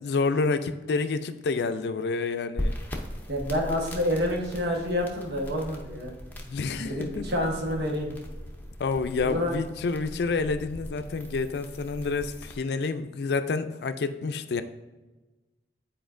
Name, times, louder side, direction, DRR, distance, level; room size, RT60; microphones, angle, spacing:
voice 1, 0.0-2.8 6.4-7.3 8.8-14.6, left 4 dB, 70° left, 10 dB, 0.4 m, -28 dB
sound 1, 2.6-12.5, equal, 10° left, 0.6 m, -38 dB
voice 2, 3.3-6.1 6.7-8.2 9.2-9.5, left 1 dB, 75° right, -1 dB, 1.2 m, -28 dB
9.2 x 4.3 x 2.5 m, 1.2 s
head